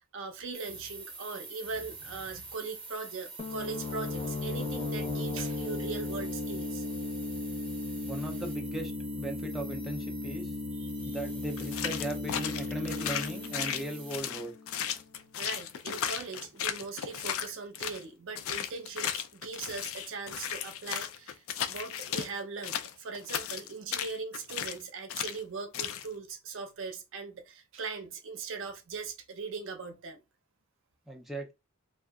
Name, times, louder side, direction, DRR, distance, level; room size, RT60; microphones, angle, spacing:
voice 1, 0.0-6.8 10.8-11.2 15.3-30.2, right 4 dB, 60° right, 0.6 m, -40 dB
sound 1, 0.5-14.2, right 4 dB, 25° right, 0.7 m, -47 dB
sound 2, 3.4-14.9, left 3 dB, 30° left, 0.7 m, -36 dB
voice 2, 8.1-8.9 9.2-10.5 11.1-14.5 31.1-31.5, right 1 dB, ahead, 0.4 m, -38 dB
sound 3, 11.6-18.0 18.4-22.3 22.6-24.8 25.1-25.4 25.7-26.1, left 9 dB, 65° left, 0.4 m, -35 dB
2.7 x 2.3 x 2.2 m
head